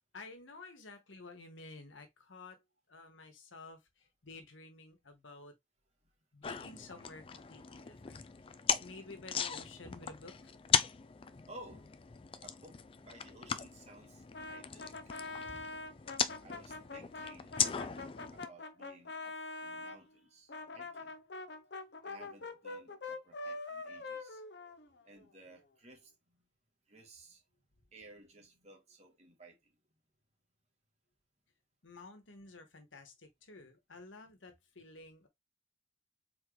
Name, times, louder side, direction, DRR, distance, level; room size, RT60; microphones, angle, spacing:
voice 1, 0.0-2.6 2.9-5.5 6.3-8.2 8.8-10.5 31.8-35.3, left 3 dB, 85° left, 1.4 m, -52 dB
sound 1, 6.4-18.5, left 7 dB, 30° left, 0.4 m, -38 dB
voice 2, 11.5-11.9 12.4-15.0 16.4-21.2 22.0-24.4 25.0-26.4 26.9-27.4 27.9-29.7, right 1 dB, 35° right, 1.8 m, -56 dB
Brass instrument, 14.3-20.0 20.5-25.3, left 3 dB, 60° left, 0.8 m, -44 dB
4.4 x 3.9 x 3.1 m
head